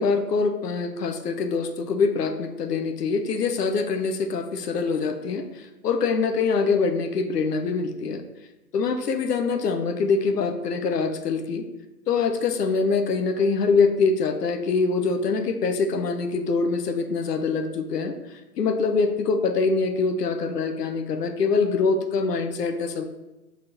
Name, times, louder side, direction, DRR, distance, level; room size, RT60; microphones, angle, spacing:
voice 1, 0.0-8.2 8.7-11.7 12.1-23.0, left 4 dB, 80° left, 7 dB, 1.0 m, -24 dB
5.6 x 3.8 x 5.8 m, 1.0 s
hypercardioid pair, 160°, 47 cm